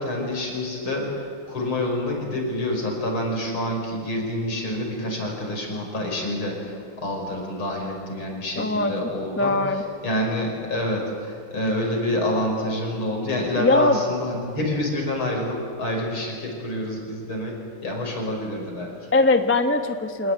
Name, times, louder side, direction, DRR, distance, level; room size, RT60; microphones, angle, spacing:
voice 1, 0.0-18.9, left 1 dB, 75° left, 1 dB, 6.1 m, -27 dB
voice 2, 8.6-8.9 9.4-9.8 13.6-14.0 19.1-20.3, left 2 dB, 10° left, 6 dB, 0.7 m, -20 dB
27.0 x 19.0 x 9.2 m, 2.3 s
omnidirectional pair, 2.3 m